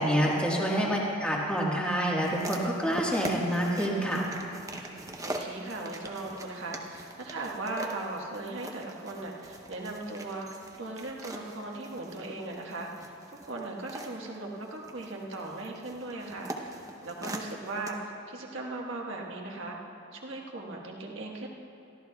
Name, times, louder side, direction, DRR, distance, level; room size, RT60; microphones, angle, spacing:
voice 1, 0.0-4.3, equal, 5° left, -4 dB, 1.6 m, -27 dB
sound 1, 2.2-17.9, right 1 dB, 15° right, 0.7 m, -42 dB
voice 2, 5.2-10.5 10.8-16.7 17.0-19.8 20.1-21.5, right 2 dB, 55° right, -1 dB, 1.5 m, -38 dB
23.0 x 14.5 x 2.4 m, 3.0 s
head